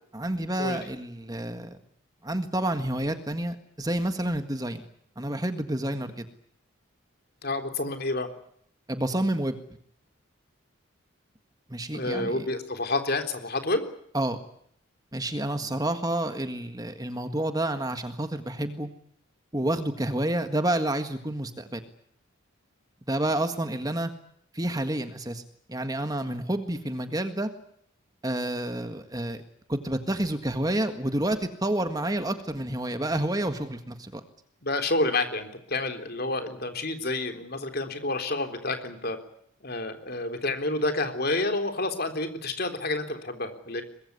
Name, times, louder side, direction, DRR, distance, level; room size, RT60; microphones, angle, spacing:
voice 1, 0.1-1.8 2.2-4.9 5.2-6.3 8.9-9.6 11.7-12.5 14.1-14.4 15.1-18.9 19.5-21.8 23.1-24.1 24.5-25.4 25.7-27.5 28.2-29.4 29.7-34.2, right 1 dB, 20° right, 8 dB, 1.7 m, -29 dB
voice 2, 7.4-8.3 11.9-13.8 15.6-15.7 34.6-39.2 39.6-43.8, left 2 dB, 45° left, 7 dB, 3.8 m, -29 dB
24.0 x 21.0 x 9.7 m, 0.68 s
head